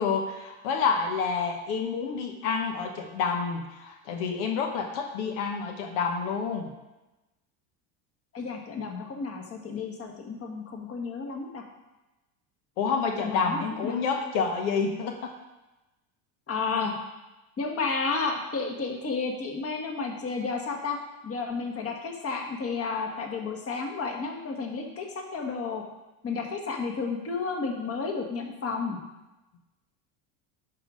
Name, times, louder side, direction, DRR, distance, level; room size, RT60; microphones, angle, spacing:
voice 1, 0.0-6.7 12.8-15.3, left 5 dB, 80° left, 3 dB, 1.1 m, -28 dB
voice 2, 8.3-11.6 13.2-14.0 16.5-16.9 17.6-21.0 21.2-25.8 26.2-29.0, left 4 dB, 35° left, 2 dB, 1.5 m, -32 dB
10.5 x 3.9 x 5.0 m, 1.0 s
supercardioid pair, 105°, 43 cm